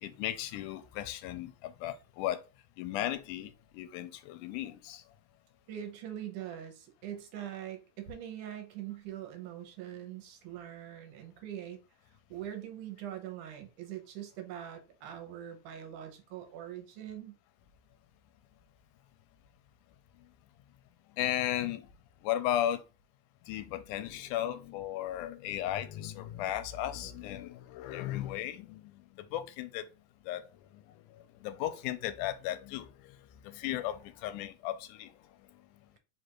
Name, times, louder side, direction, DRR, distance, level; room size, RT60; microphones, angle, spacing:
voice 1, 0.0-2.4 2.8-5.0 21.2-21.9 22.2-22.8 23.4-29.9 30.3-30.8 31.1-33.2 33.4-35.1, left 12 dB, 85° left, 2.0 m, -35 dB
voice 2, 5.7-11.8 12.3-17.3, right 11 dB, 80° right, 2.3 m, -43 dB
4.9 x 2.5 x 4.4 m
omnidirectional pair, 3.6 m